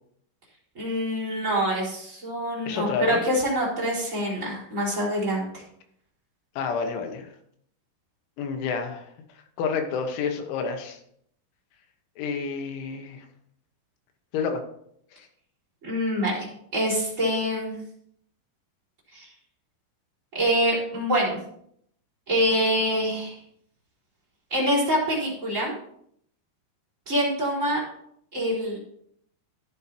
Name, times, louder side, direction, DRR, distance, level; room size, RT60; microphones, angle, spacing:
voice 1, 0.7-5.5 15.8-16.5 16.7-17.8 19.1-19.3 20.3-21.4 22.3-23.3 24.5-25.7 27.1-27.8 28.3-28.8, equal, 15° right, -6 dB, 4.3 m, -25 dB
voice 2, 2.7-3.2 6.6-7.3 8.4-9.1 9.6-11.0 12.2-13.3 14.3-14.6 15.1-15.3, left 5 dB, 75° left, 5 dB, 3.6 m, -29 dB
14.0 x 10.5 x 2.9 m, 0.70 s
omnidirectional pair, 5.8 m